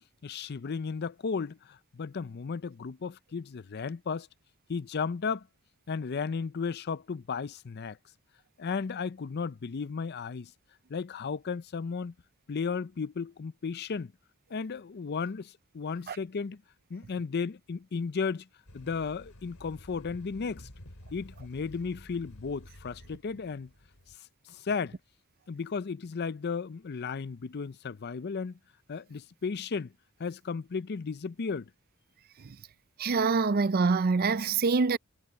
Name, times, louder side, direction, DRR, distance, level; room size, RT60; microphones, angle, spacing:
voice 1, 0.2-4.3 4.7-5.5 5.9-8.0 8.6-10.5 10.9-12.1 12.5-14.1 14.5-16.6 16.9-18.5 18.7-20.7 21.1-23.7 24.5-25.0 25.5-28.6 28.9-29.9 30.2-31.7, left 5 dB, 50° left, 0.5 m, -34 dB
sound 1, 18.7-24.2, left 1 dB, 85° left, 3.1 m, -51 dB
voice 2, 33.0-35.0, right 4 dB, 45° right, 0.5 m, -25 dB
head